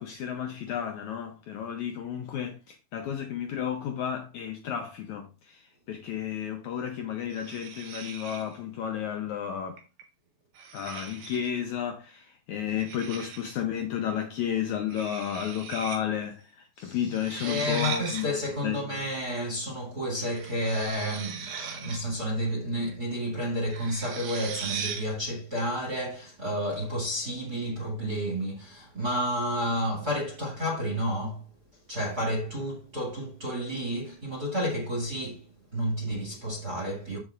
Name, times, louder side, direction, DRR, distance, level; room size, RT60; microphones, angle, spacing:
voice 1, 0.0-9.8 10.7-18.3 18.6-18.8, left 9 dB, 85° left, 1.6 m, -32 dB
sound 1, 7.3-8.6 9.8-10.0 10.6-11.6 12.8-13.6 14.9-16.3 17.1-18.3 20.2-22.2 23.7-25.1, right 6 dB, 85° right, 3.3 m, -39 dB
voice 2, 16.8-17.1 17.4-31.5 31.9-35.4 35.7-37.2, equal, 30° right, 2.0 m, -31 dB
14.0 x 5.3 x 2.4 m
omnidirectional pair, 4.4 m